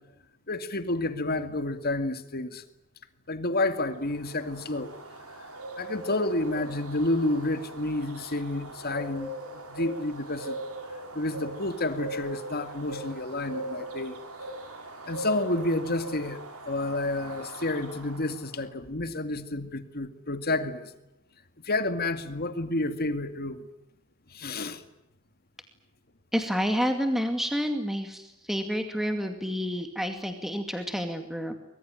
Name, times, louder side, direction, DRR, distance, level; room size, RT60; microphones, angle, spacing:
voice 1, 0.5-2.6 3.3-4.9 5.4-5.5 5.7-10.6 11.1-14.2 15.1-20.9 21.6-23.7 24.3-24.8, left 2 dB, 45° left, 2.2 m, -30 dB
sound 1, 3.9-18.5, right 1 dB, 80° right, 5.8 m, -40 dB
voice 2, 26.3-31.5, equal, ahead, 2.3 m, -29 dB
24.5 x 22.5 x 9.1 m
head